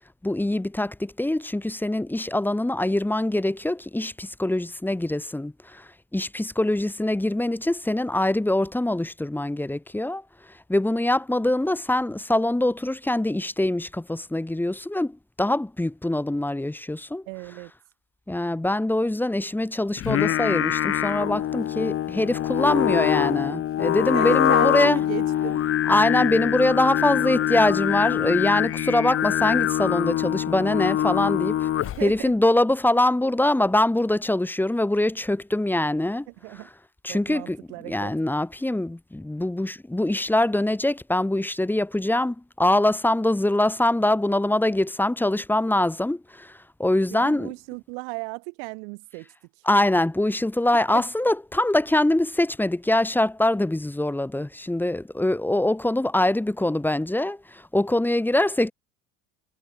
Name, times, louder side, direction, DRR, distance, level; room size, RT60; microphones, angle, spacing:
voice 1, 0.2-10.2 10.7-17.2 18.3-25.0 25.9-31.7 32.0-36.3 37.0-37.6 37.9-47.5 49.7-58.7, left 1 dB, 5° left, 1.0 m, -23 dB
voice 2, 17.3-17.7 24.1-25.6 31.8-32.3 36.3-36.7 37.1-38.1 47.1-49.3 50.9-51.0, right 37 dB, 75° right, 2.3 m, -35 dB
Singing, 20.0-32.2, left 12 dB, 35° left, 0.7 m, -24 dB
hypercardioid pair, 80°, 38 cm